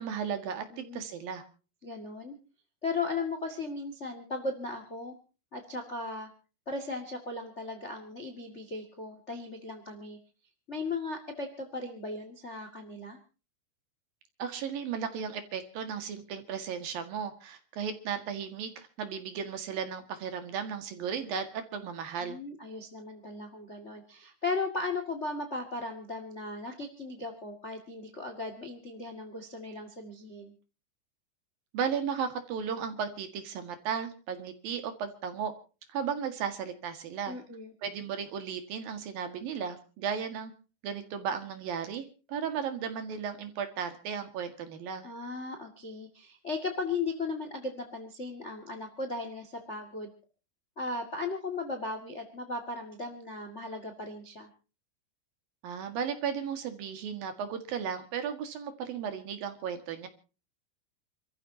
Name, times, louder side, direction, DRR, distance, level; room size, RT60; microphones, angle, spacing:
voice 1, 0.0-1.4 14.4-22.4 31.7-35.5 35.9-37.4 37.8-40.5 40.8-45.0 55.6-60.1, right 7 dB, 60° right, 8 dB, 3.2 m, -35 dB
voice 2, 0.7-1.0 1.8-2.4 2.8-5.1 5.5-6.3 6.6-10.2 10.7-13.2 22.2-30.5 37.3-37.7 45.0-50.1 50.7-54.5, left 3 dB, 75° left, 5 dB, 0.6 m, -37 dB
28.5 x 14.0 x 2.8 m, 0.35 s
omnidirectional pair, 5.3 m